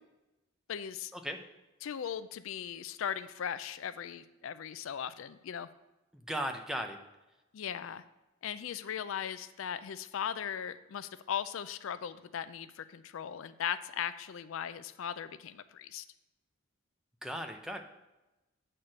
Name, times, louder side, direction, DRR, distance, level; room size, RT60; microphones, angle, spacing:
voice 1, 0.7-1.1 1.8-5.7 7.5-8.0 8.4-16.0, left 8 dB, 70° left, 13 dB, 0.4 m, -38 dB
voice 2, 6.1-7.0 17.2-17.8, equal, 5° right, 4 dB, 0.6 m, -37 dB
8.1 x 4.4 x 6.3 m, 1.0 s
head